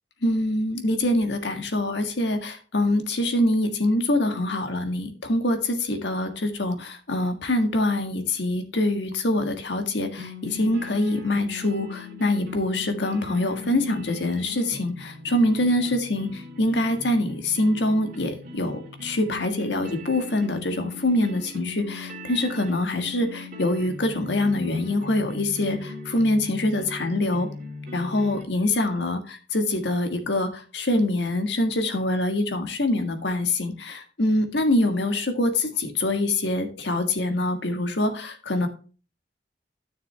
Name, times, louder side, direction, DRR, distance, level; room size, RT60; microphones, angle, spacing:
voice 1, 0.2-27.5 27.9-38.7, left 1 dB, 70° left, 6 dB, 1.7 m, -25 dB
sound 1, 10.2-28.4, left 3 dB, 50° right, 2.5 m, -39 dB
12.5 x 6.7 x 3.3 m, 0.37 s
head